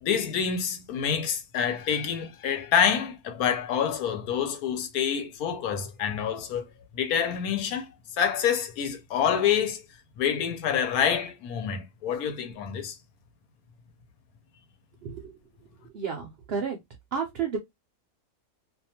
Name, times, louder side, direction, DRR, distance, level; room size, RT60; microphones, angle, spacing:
voice 1, 0.0-6.7 6.9-7.9 8.2-9.8 10.2-13.0, left 8 dB, 85° left, 1.1 m, -27 dB
voice 2, 15.0-15.3 15.9-16.8 17.1-17.6, right 6 dB, 65° right, 0.6 m, -31 dB
2.5 x 2.2 x 2.7 m
omnidirectional pair, 1.5 m